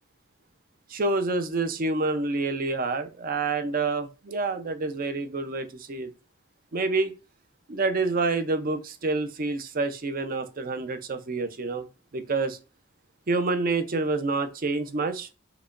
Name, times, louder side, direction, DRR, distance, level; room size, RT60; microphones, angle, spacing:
voice 1, 0.9-6.1 6.7-7.1 7.7-11.8 12.1-12.6 13.3-15.3, right 3 dB, 45° right, 0.5 m, -27 dB
4.8 x 2.1 x 2.4 m
head